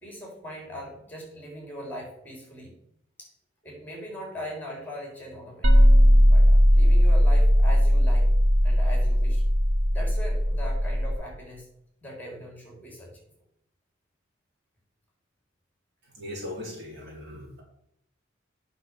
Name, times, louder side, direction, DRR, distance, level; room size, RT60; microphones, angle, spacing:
voice 1, 0.0-2.7 3.2-3.3 3.6-5.7 6.3-8.3 8.6-9.4 9.9-11.6 12.0-13.1, equal, 10° left, -1 dB, 3.4 m, -40 dB
sound 1, 5.6-11.2, equal, 75° right, 1.2 m, -18 dB
voice 2, 16.0-17.6, left 1 dB, 55° right, -3 dB, 4.1 m, -39 dB
9.3 x 6.3 x 6.2 m, 0.74 s
head